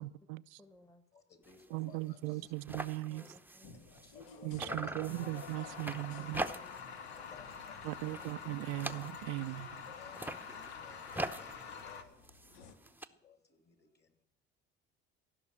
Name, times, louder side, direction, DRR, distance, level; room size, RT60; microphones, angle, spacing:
voice 1, 0.0-0.6 1.7-3.2 4.4-6.4 7.8-9.7, right 20 dB, 75° right, 0.5 m, -38 dB
voice 2, 0.6-1.1 3.1-4.0 5.9-7.0 8.1-8.3 8.8-9.0 10.1-10.4, left 1 dB, 10° left, 1.3 m, -63 dB
voice 3, 1.1-2.5 3.7-5.0 7.3-8.0 9.4-9.7 9.9-14.1, left 6 dB, 35° left, 3.0 m, -60 dB
sound 1, 1.4-1.7 2.0-2.1 2.3-4.3 4.6-6.9 7.3-7.6 8.0-9.5 10.0-13.1, right 2 dB, 5° right, 0.8 m, -43 dB
sound 2, 3.6-12.8, left 6 dB, 70° left, 1.4 m, -55 dB
sound 3, 5.1-12.0, left 6 dB, 90° left, 1.1 m, -47 dB
16.0 x 6.2 x 8.6 m
hypercardioid pair, 65°, 31 cm